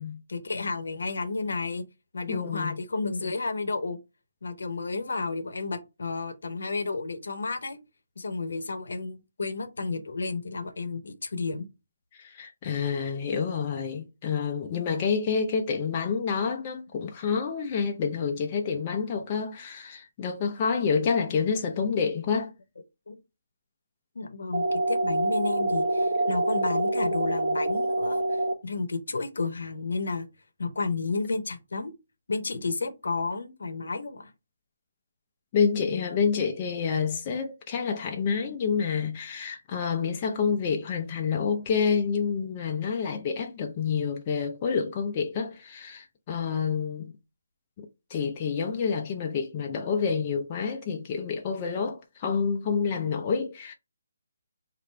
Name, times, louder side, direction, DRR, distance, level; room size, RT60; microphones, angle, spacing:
voice 1, 0.3-1.8 2.1-4.0 4.4-7.8 8.2-11.7 21.0-21.1 23.1-23.2 24.1-30.3 30.6-31.9 32.3-34.3, left 3 dB, 80° left, 0.8 m, -32 dB
voice 2, 2.3-2.8 12.1-22.5 35.5-47.1 47.8-53.7, left 6 dB, 30° left, 0.5 m, -28 dB
sound 1, 24.5-28.5, right 2 dB, 40° right, 0.9 m, -26 dB
3.1 x 2.5 x 4.3 m
hypercardioid pair, 160°, 0 cm